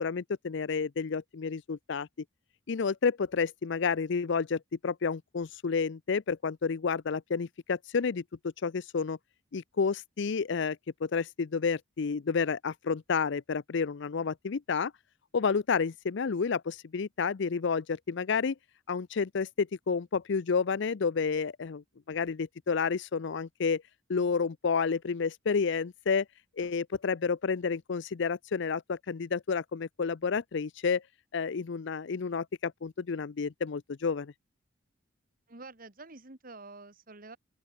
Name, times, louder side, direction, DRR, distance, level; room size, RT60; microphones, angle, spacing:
voice 1, 0.0-2.1 2.7-9.2 9.5-14.9 15.3-18.5 18.9-23.8 24.1-26.3 26.6-31.0 31.3-34.3, left 5 dB, 60° left, 0.5 m, -30 dB
voice 2, 35.5-37.4, right 3 dB, 45° right, 2.1 m, -48 dB
open air
head